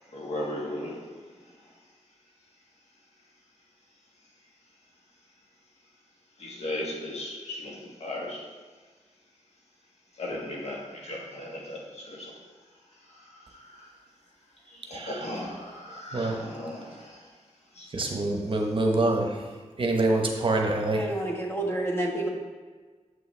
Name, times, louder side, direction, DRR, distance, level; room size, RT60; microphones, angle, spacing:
voice 1, 0.1-1.0 6.4-8.4 10.2-12.3 13.5-13.9 14.9-17.2 17.8-17.9, left 1 dB, 65° left, -3 dB, 1.7 m, -36 dB
voice 2, 14.9-15.3 16.1-16.4 17.9-19.4 19.8-21.1, right 2 dB, 45° right, 2 dB, 1.0 m, -25 dB
voice 3, 20.9-22.3, right 1 dB, 20° left, -1 dB, 1.4 m, -29 dB
7.8 x 5.5 x 3.3 m, 1.4 s
wide cardioid pair, 85°, 12 cm